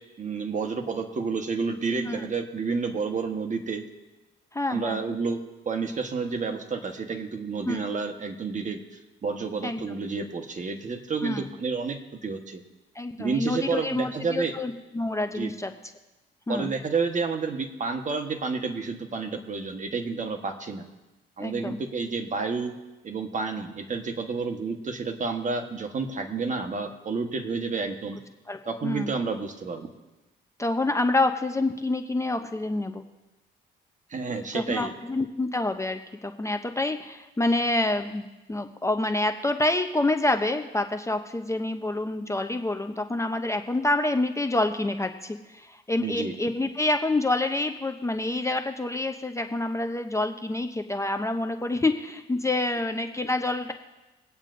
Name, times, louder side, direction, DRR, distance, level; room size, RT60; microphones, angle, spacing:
voice 1, 0.2-3.8 4.7-5.4 5.6-8.8 9.2-12.6 13.2-14.5 15.3-15.5 16.5-20.8 21.4-22.7 23.0-28.2 28.7-29.9 34.1-34.9 46.0-46.3, right 4 dB, 40° right, 6 dB, 1.2 m, -30 dB
voice 2, 4.5-5.1 7.6-7.8 9.6-9.9 11.2-11.5 12.9-15.7 16.5-16.7 21.4-21.8 28.5-29.1 30.6-33.0 34.5-53.7, left 2 dB, 15° left, 6 dB, 0.7 m, -27 dB
22.0 x 8.9 x 2.6 m, 1.1 s
cardioid pair, 90°, 20 cm